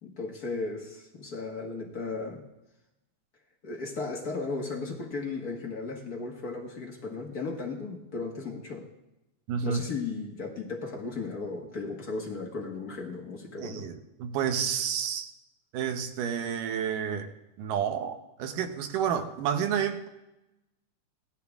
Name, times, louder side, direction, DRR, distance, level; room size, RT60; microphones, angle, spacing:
voice 1, 0.0-2.4 3.6-8.9 9.6-13.9, left 3 dB, 45° left, 0 dB, 1.2 m, -35 dB
voice 2, 9.5-9.8 13.6-15.3 15.7-17.3 17.6-20.1, right 8 dB, 85° right, 7 dB, 2.6 m, -30 dB
17.0 x 13.0 x 3.6 m, 0.95 s
omnidirectional pair, 3.7 m